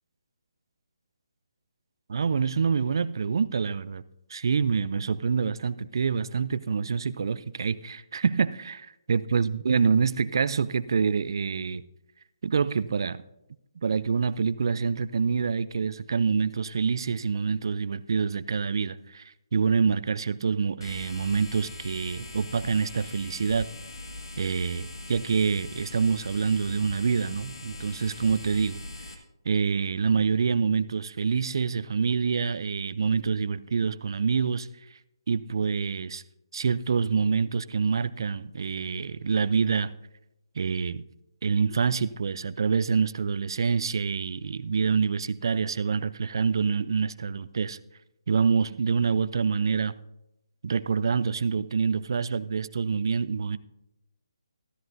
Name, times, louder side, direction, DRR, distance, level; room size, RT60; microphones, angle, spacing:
voice 1, 2.1-4.0 4.3-11.8 12.4-13.2 13.8-23.7 24.4-28.8 29.5-34.7 35.3-36.2 36.5-39.9 40.6-41.0 41.4-47.8 48.3-50.0 50.6-53.6, right 5 dB, 60° right, 0.5 m, -26 dB
sound 1, 20.8-29.1, left 2 dB, 60° left, 1.7 m, -41 dB
13.5 x 13.0 x 2.6 m
figure-of-eight pair, 150°, 3 cm